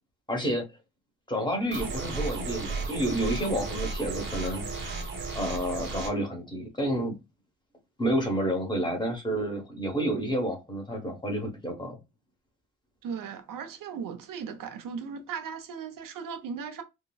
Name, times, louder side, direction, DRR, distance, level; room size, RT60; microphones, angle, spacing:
voice 1, 0.3-0.6 1.3-5.0 5.3-7.1 8.0-12.0, right 1 dB, 15° left, 0.9 m, -30 dB
sound 1, 1.7-6.1, right 3 dB, 35° right, 0.9 m, -34 dB
voice 2, 13.0-16.8, right 6 dB, 90° right, 0.7 m, -37 dB
3.7 x 2.0 x 2.2 m
wide cardioid pair, 160°, 32 cm